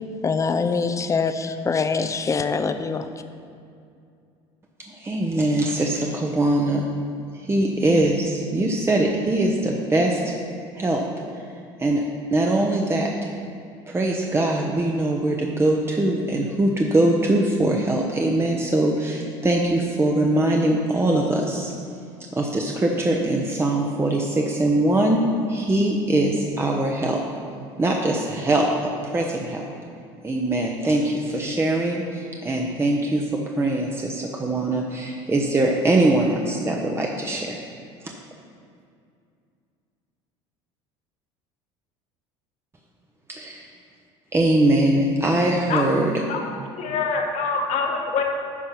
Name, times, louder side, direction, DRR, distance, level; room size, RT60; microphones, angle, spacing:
voice 1, 0.2-3.1, left 5 dB, 25° left, 9 dB, 0.6 m, -24 dB
voice 2, 4.9-6.9 7.3-10.4 10.7-12.0 12.3-13.3 13.9-21.7 22.3-27.2 27.8-29.7 30.2-37.6 38.0-38.1 43.3-43.7 44.3-46.1, right 1 dB, 20° right, 0 dB, 0.9 m, -22 dB
voice 3, 46.3-48.2, left 5 dB, 55° left, 2 dB, 1.4 m, -25 dB
11.0 x 4.4 x 5.8 m, 2.4 s
hypercardioid pair, 80°, 14 cm